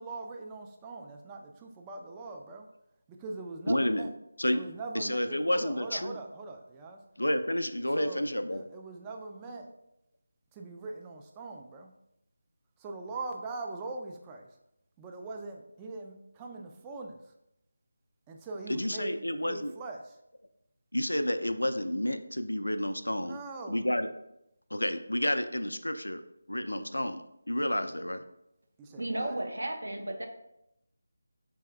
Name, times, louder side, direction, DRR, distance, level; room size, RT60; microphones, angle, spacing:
voice 1, 0.0-2.7 3.1-4.1 4.5-7.0 7.9-8.2 8.5-9.7 10.6-11.9 12.8-14.4 15.0-17.2 18.3-20.1 23.2-23.8 28.8-29.3, right 3 dB, 15° right, 2 dB, 0.3 m, -41 dB
voice 2, 3.7-4.1 4.4-4.6 4.9-6.2 7.2-8.6 18.7-19.7 20.9-23.4 23.7-24.1 24.7-26.2 26.5-28.2, left 1 dB, 80° left, 9 dB, 0.4 m, -30 dB
voice 3, 29.0-30.3, right 1 dB, 70° right, 4 dB, 0.6 m, -34 dB
3.4 x 3.1 x 3.3 m, 0.82 s
figure-of-eight pair, 160°, 0 cm